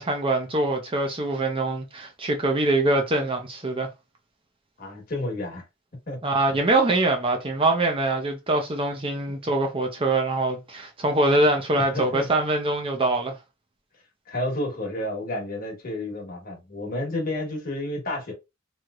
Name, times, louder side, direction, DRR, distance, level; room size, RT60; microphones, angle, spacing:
voice 1, 0.0-3.9 6.2-13.4, right 2 dB, 25° right, 0.6 m, -23 dB
voice 2, 4.8-5.6 6.1-6.3 11.8-12.3 14.3-18.3, left 1 dB, 45° left, 1.2 m, -31 dB
3.1 x 2.8 x 2.4 m
head